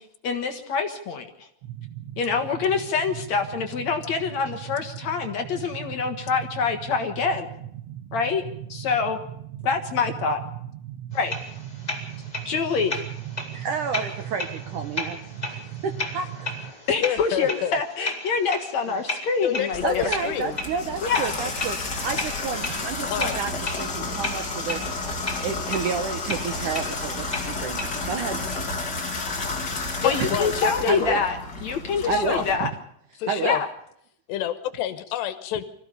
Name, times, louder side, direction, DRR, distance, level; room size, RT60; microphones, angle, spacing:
voice 1, 0.0-1.5 2.2-7.5 8.1-8.4 8.7-9.2 9.6-10.4 11.1-11.3 12.5-12.9 16.9-20.1 21.0-21.3 30.0-32.7 33.4-33.7, left 5 dB, 60° left, 6 dB, 2.0 m, -26 dB
sound 1, 1.6-16.7, right 12 dB, 85° right, 1.5 m, -38 dB
sound 2, 11.1-28.0, left 2 dB, 10° left, 3.5 m, -35 dB
voice 2, 13.5-15.2 15.5-16.6 18.9-19.0 19.8-21.8 22.0-23.5 23.8-24.9 25.4-28.5 30.2-30.3 30.9-31.2 32.1-32.7 33.3-33.6, right 6 dB, 70° right, 8 dB, 2.0 m, -30 dB
voice 3, 17.0-17.8 18.9-19.0 19.4-20.6 23.1-23.4 30.0-31.2 32.0-32.4 33.2-33.6 34.3-35.7, left 11 dB, 85° left, 13 dB, 3.2 m, -28 dB
Water tap faucet / Bathtub (filling or washing), 19.7-32.5, left 3 dB, 30° left, 2.8 m, -31 dB
25.0 x 15.5 x 6.8 m, 0.72 s
omnidirectional pair, 4.9 m